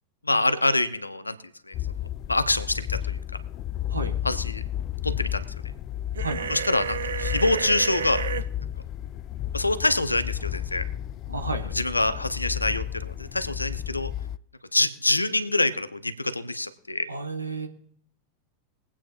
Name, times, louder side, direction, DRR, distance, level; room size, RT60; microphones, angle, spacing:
voice 1, 0.2-1.4 1.7-1.8 2.3-3.2 4.2-4.6 5.0-5.4 6.5-8.2 9.5-10.8 11.7-14.1 14.7-17.1, left 2 dB, 85° left, 11 dB, 0.7 m, -25 dB
sound 1, 1.7-14.4, left 11 dB, 35° left, 0.3 m, -32 dB
sound 2, 6.2-8.4, right 7 dB, 65° right, 0.7 m, -31 dB
voice 2, 6.2-6.6 11.3-11.8 17.1-17.7, right 3 dB, 80° right, 4 dB, 1.3 m, -32 dB
22.5 x 8.7 x 2.5 m, 0.66 s
figure-of-eight pair, 90°, 0 cm